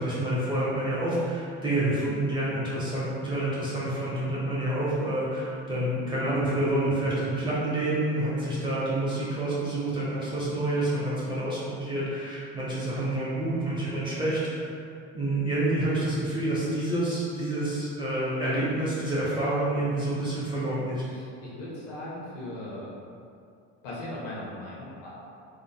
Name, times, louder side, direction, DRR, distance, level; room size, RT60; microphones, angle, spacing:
voice 1, 0.0-14.7 15.1-21.0, right 1 dB, 15° right, -9 dB, 1.3 m, -28 dB
voice 2, 21.0-22.9 23.8-25.1, left 1 dB, 80° left, -6 dB, 1.2 m, -38 dB
3.6 x 3.6 x 2.2 m, 2.4 s
hypercardioid pair, 70°, 37 cm